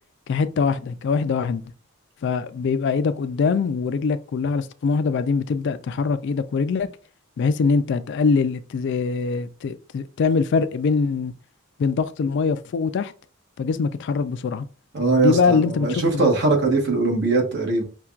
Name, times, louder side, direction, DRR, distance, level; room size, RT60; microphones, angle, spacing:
voice 1, 0.3-1.6 2.2-6.9 7.4-11.3 11.8-13.1 13.6-14.7 15.2-16.3, left 5 dB, 60° left, 0.3 m, -23 dB
voice 2, 14.9-17.8, right 3 dB, 55° right, 1.1 m, -21 dB
5.6 x 2.2 x 2.4 m
head